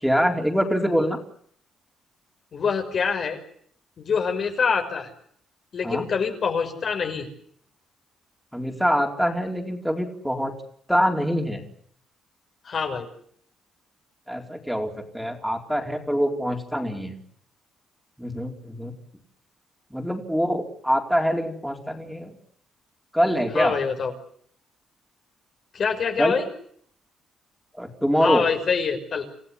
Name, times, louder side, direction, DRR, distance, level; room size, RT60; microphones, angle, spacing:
voice 1, 0.0-1.2 5.8-6.0 8.5-10.5 10.9-11.7 14.3-17.2 18.2-18.9 19.9-22.3 23.1-23.7 26.2-26.3 27.8-28.4, equal, ahead, 3 dB, 4.3 m, -24 dB
voice 2, 2.5-3.4 4.0-5.1 5.7-7.3 12.6-13.1 23.5-24.1 25.7-26.5 28.2-29.2, left 5 dB, 55° left, 4 dB, 5.8 m, -25 dB
28.5 x 15.5 x 9.9 m, 0.63 s
cardioid pair, 90°, 0 cm